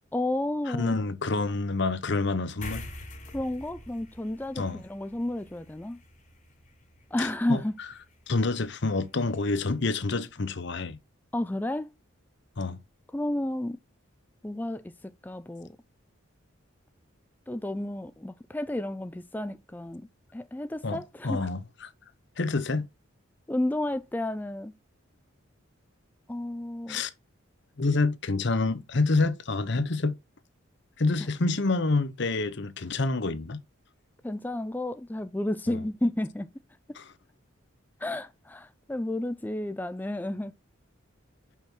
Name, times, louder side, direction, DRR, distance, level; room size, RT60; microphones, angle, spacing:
voice 1, 0.1-0.9 3.3-6.0 7.1-7.7 11.3-11.9 13.1-13.8 14.4-15.7 17.5-21.5 23.5-24.7 26.3-27.0 34.2-36.5 36.9-37.0 38.0-40.5, left 1 dB, 10° left, 0.3 m, -32 dB
voice 2, 0.7-2.9 4.6-4.8 7.2-7.6 8.3-11.0 12.6-12.8 20.8-21.9 22.4-22.9 26.9-27.1 27.8-30.2 31.0-33.6 35.7-35.8 36.9-37.1, left 3 dB, 55° left, 0.8 m, -28 dB
sound 1, 2.6-9.4, left 2 dB, 35° left, 1.4 m, -47 dB
6.1 x 5.7 x 4.4 m
head